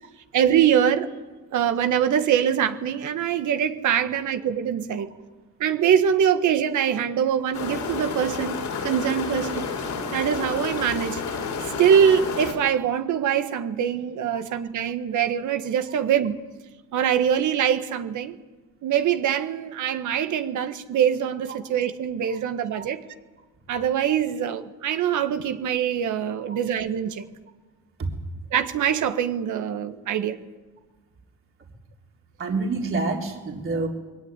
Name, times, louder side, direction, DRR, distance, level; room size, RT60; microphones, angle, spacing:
voice 1, 0.3-1.1 1.5-5.1 5.6-8.6 8.8-9.7 10.1-11.2 11.6-16.4 16.9-18.4 18.8-23.0 23.7-27.2 28.5-30.4, right 8 dB, 75° right, 8 dB, 1.6 m, -23 dB
sound 1, 7.5-12.5, left 5 dB, 80° left, 6.0 m, -30 dB
voice 2, 32.4-33.9, right 3 dB, 45° right, 0 dB, 3.5 m, -28 dB
21.5 x 17.5 x 9.8 m, 1.2 s
cardioid pair, 90°, 30 cm